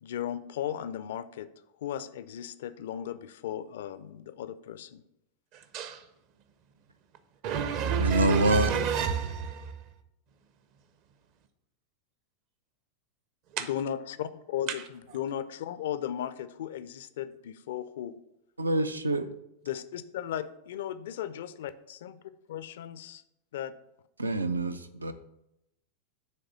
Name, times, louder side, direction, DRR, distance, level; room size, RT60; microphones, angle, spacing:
voice 1, 0.0-1.5 1.8-5.0 13.6-18.1 19.6-22.2 22.5-23.2 23.5-23.7, left 10 dB, 55° left, 14 dB, 0.4 m, -36 dB
voice 2, 7.4-9.7 13.5-13.7, right 6 dB, 45° right, 10 dB, 0.6 m, -29 dB
voice 3, 8.0-8.7 18.6-19.3 24.2-25.1, right 1 dB, 80° right, 10 dB, 0.4 m, -26 dB
7.6 x 3.2 x 5.9 m, 0.84 s
figure-of-eight pair, 90°, 0 cm